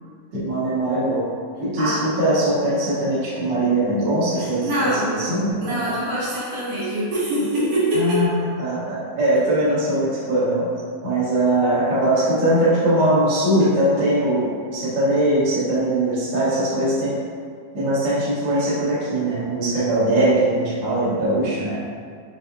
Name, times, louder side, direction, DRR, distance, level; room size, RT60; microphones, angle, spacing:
voice 1, 0.3-1.3 1.6-5.9 7.9-10.7 11.0-17.2 17.7-21.7, right 1 dB, 75° right, -10 dB, 1.0 m, -21 dB
voice 2, 4.4-5.1 5.6-8.2, right 1 dB, 55° right, -10 dB, 2.1 m, -24 dB
5.6 x 3.3 x 2.6 m, 2.1 s
omnidirectional pair, 4.1 m